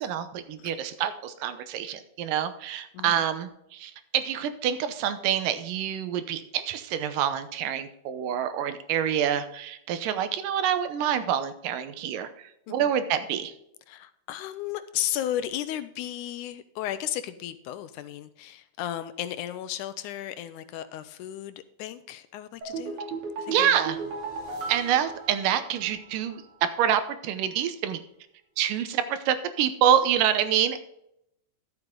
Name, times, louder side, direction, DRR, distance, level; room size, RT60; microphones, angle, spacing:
voice 1, 0.0-13.5 23.5-24.0 24.7-28.0 28.6-30.8, right 9 dB, 90° right, 11 dB, 2.5 m, -27 dB
voice 2, 13.9-23.0 23.4-23.8, left 12 dB, 80° left, 12 dB, 2.0 m, -34 dB
sound 1, 22.6-26.0 26.3-26.4, right 4 dB, 65° right, 3.9 m, -36 dB
11.5 x 7.9 x 3.8 m, 0.77 s
omnidirectional pair, 3.7 m